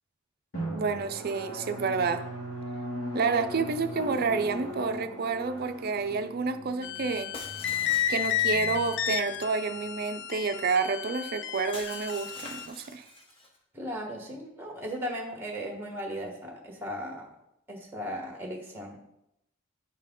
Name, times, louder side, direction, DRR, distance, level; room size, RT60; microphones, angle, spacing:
Drum, 0.5-9.8, equal, 70° left, 2.0 m, -39 dB
voice 1, 0.7-2.2 3.1-7.3 8.1-13.0, right 4 dB, 45° right, 8 dB, 0.4 m, -29 dB
sound 1, 6.8-12.7, left 10 dB, 50° left, 0.4 m, -32 dB
Shatter, 7.3-9.0 11.7-13.6, left 2 dB, 25° left, 0.9 m, -45 dB
voice 2, 13.7-17.2 17.7-19.0, equal, 10° right, 1 dB, 1.2 m, -37 dB
9.7 x 4.5 x 3.7 m, 0.82 s
head